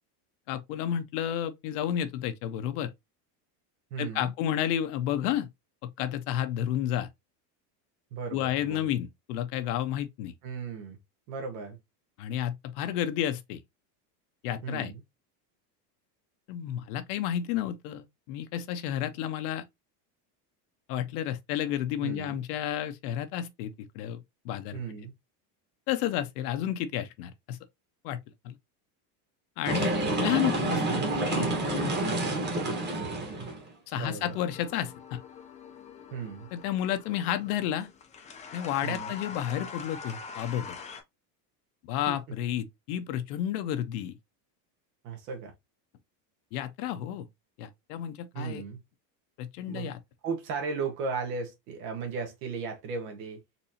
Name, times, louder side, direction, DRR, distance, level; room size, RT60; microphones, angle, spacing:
voice 1, 0.5-2.9 4.0-5.5 5.8-7.1 8.3-10.3 12.2-13.6 14.4-14.9 16.5-19.6 20.9-24.8 25.9-27.6 28.0-28.2 28.4-28.5 29.6-31.0 31.3-32.0 33.9-35.2 36.5-37.9 38.5-40.8 41.8-44.2 46.5-47.3 47.6-48.6 49.4-50.0, left 11 dB, 70° left, 0.8 m, -31 dB
voice 2, 3.9-4.3 8.1-9.0 10.4-11.0 11.3-11.8 14.6-15.0 22.0-22.4 24.7-25.1 33.9-34.4 36.1-36.5 38.8-39.1 42.1-42.2 45.0-45.5 48.3-48.8 49.7-49.9 50.2-53.4, right 5 dB, 75° right, 1.3 m, -36 dB
sound 1, 29.7-33.6, right 2 dB, 20° right, 1.2 m, -28 dB
sound 2, 34.2-41.0, left 5 dB, 15° left, 0.4 m, -44 dB
4.2 x 2.7 x 2.7 m
supercardioid pair, 140°, 48 cm